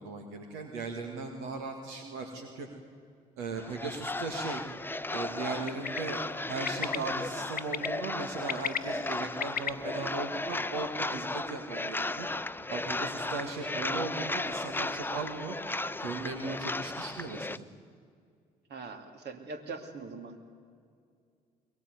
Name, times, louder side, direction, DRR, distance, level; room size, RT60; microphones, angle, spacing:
voice 1, 0.0-2.7 3.4-4.6 5.1-12.3 12.7-15.6 16.0-17.7, right 4 dB, 80° right, 3 dB, 2.0 m, -38 dB
sound 1, 3.6-17.6, left 2 dB, 10° left, 0.7 m, -35 dB
Bird, 5.7-6.0 6.7-7.0 7.6-7.9 8.3-9.7, left 7 dB, 45° left, 1.0 m, -33 dB
voice 2, 18.7-20.4, right 4 dB, 60° right, 5 dB, 2.8 m, -42 dB
23.0 x 20.5 x 9.5 m, 2.2 s
hypercardioid pair, 50°, 20 cm